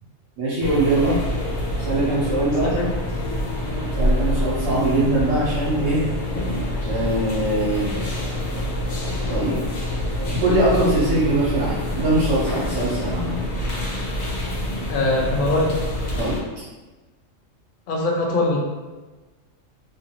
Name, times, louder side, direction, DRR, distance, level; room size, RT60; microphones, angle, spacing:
voice 1, 0.4-1.2 1.8-2.7 4.0-6.1 6.9-7.9 9.3-9.6 10.2-13.4 16.1-16.6, right 1 dB, 60° right, -8 dB, 1.1 m, -22 dB
sound 1, 0.6-16.4, left 1 dB, 85° left, 1.0 m, -26 dB
voice 2, 14.9-15.8 17.9-18.6, left 2 dB, 65° left, 0 dB, 0.5 m, -22 dB
2.7 x 2.5 x 2.8 m, 1.2 s
omnidirectional pair, 1.4 m